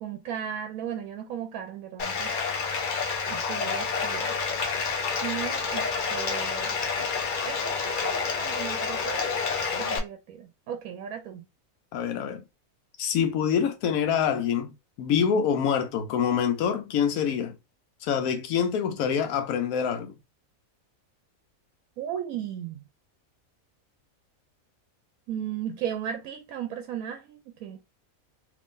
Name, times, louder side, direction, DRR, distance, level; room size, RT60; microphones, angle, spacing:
voice 1, 0.0-2.3 3.3-4.3 5.2-6.7 7.4-9.3 9.8-11.5 22.0-22.8 25.3-27.8, right 9 dB, 90° right, 1.0 m, -36 dB
Bathtub (filling or washing), 2.0-10.0, left 5 dB, 50° left, 0.6 m, -29 dB
voice 2, 11.9-12.4 13.0-14.7 15.0-17.5 18.0-20.1, left 7 dB, 85° left, 1.0 m, -25 dB
2.9 x 2.5 x 3.6 m
omnidirectional pair, 1.4 m